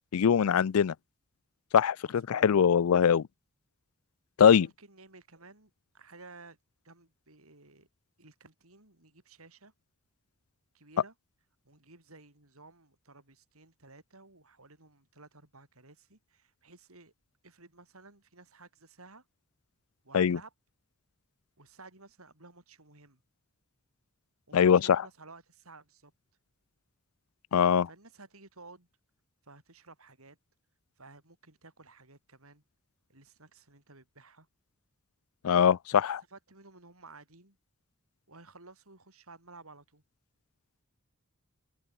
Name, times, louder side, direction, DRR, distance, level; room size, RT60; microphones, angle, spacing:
voice 1, 0.1-0.9 1.7-3.2 4.4-4.7 20.1-20.4 24.5-25.0 27.5-27.9 35.4-36.2, left 7 dB, 85° left, 0.4 m, -22 dB
voice 2, 2.0-2.5 4.4-6.6 6.8-7.9 8.2-9.7 10.7-11.1 11.6-17.1 17.4-19.2 20.0-20.5 21.6-23.2 24.5-26.1 27.9-28.9 29.4-30.4 31.0-32.6 33.1-34.5 36.3-37.6 38.3-40.0, right 3 dB, 80° right, 6.6 m, -54 dB
head